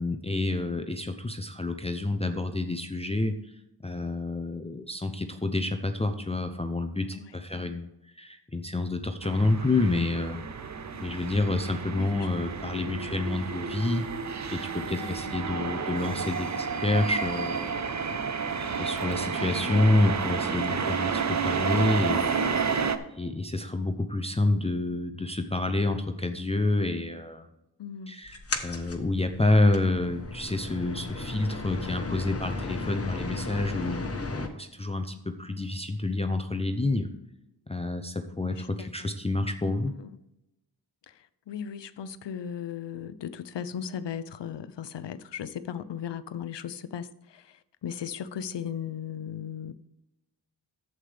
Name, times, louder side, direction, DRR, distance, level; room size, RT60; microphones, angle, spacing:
voice 1, 0.0-3.6 3.8-10.4 11.0-14.1 14.5-17.7 18.8-22.5 23.1-27.5 28.1-37.1 37.7-39.9, left 2 dB, 15° left, 0.6 m, -28 dB
voice 2, 7.1-7.7 11.9-12.1 12.4-12.5 12.9-13.5 14.9-15.4 27.8-28.1 32.6-33.6 38.4-38.9 39.6-40.1 41.1-49.7, left 8 dB, 75° left, 0.7 m, -38 dB
sound 1, 9.2-23.0, right 5 dB, 40° right, 0.7 m, -31 dB
sound 2, 28.3-34.5, left 3 dB, 35° left, 1.1 m, -35 dB
11.5 x 8.1 x 3.4 m
wide cardioid pair, 110°, 42 cm